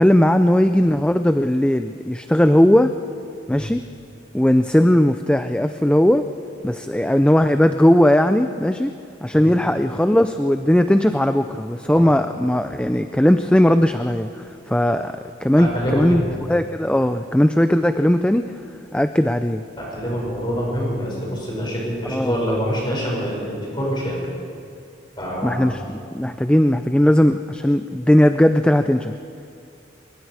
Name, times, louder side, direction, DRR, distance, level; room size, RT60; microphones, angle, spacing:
voice 1, 0.0-2.9 3.5-3.8 4.3-6.2 6.6-8.9 9.2-16.2 16.5-18.5 18.9-19.6 22.0-22.4 25.4-29.1, left 1 dB, 5° left, 9 dB, 0.4 m, -18 dB
voice 2, 15.6-16.2 19.8-24.2 25.2-25.7, equal, 25° left, -3 dB, 6.3 m, -25 dB
24.5 x 22.0 x 4.8 m, 2.4 s
head